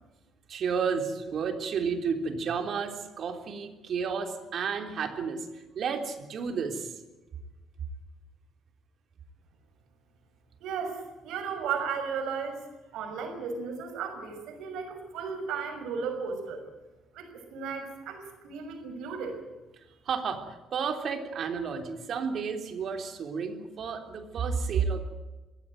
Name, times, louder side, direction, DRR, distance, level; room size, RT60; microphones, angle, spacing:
voice 1, 0.5-6.9 20.1-25.0, right 6 dB, 50° right, 6 dB, 3.5 m, -31 dB
voice 2, 10.6-12.6 12.9-16.6 17.1-19.4, right 6 dB, 80° right, 5 dB, 6.1 m, -35 dB
22.5 x 16.5 x 9.1 m, 1.1 s
cardioid pair, 140°, 0 cm